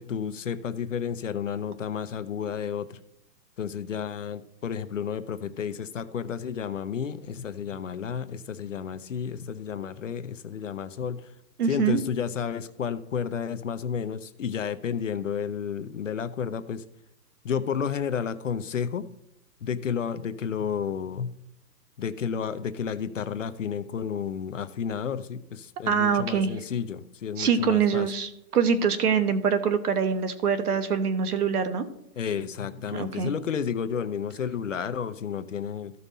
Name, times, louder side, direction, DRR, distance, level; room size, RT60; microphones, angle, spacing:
voice 1, 0.0-3.0 3.6-11.3 11.7-16.8 17.4-19.1 19.6-21.3 22.0-28.1 32.2-35.9, left 7 dB, 50° left, 11 dB, 0.5 m, -31 dB
voice 2, 11.6-12.0 25.9-26.5 27.4-31.8 32.9-33.3, right 6 dB, 65° right, 11 dB, 1.2 m, -24 dB
14.0 x 5.4 x 4.1 m, 0.80 s
hypercardioid pair, 175°, 49 cm